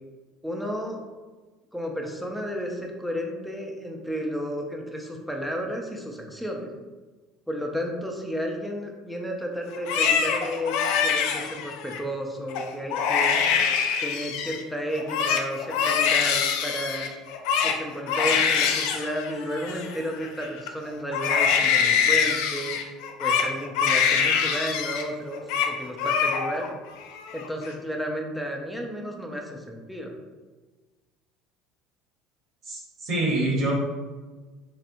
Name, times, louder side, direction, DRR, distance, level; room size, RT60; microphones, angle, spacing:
voice 1, 0.4-1.0 1.7-6.7 7.5-10.8 11.0-13.4 14.0-17.1 17.6-22.8 23.2-26.7 27.3-30.2, equal, ahead, 0 dB, 0.5 m, -32 dB
Crying sobbing, 9.7-12.0 12.5-12.7 12.9-14.6 14.9-20.7 21.1-25.1 25.3-25.7 26.0-26.7 27.1-27.7, left 7 dB, 65° left, 0.4 m, -24 dB
voice 2, 32.6-33.7, right 2 dB, 40° right, -2 dB, 0.9 m, -26 dB
4.2 x 3.2 x 2.6 m, 1.3 s
cardioid pair, 165°, 0 cm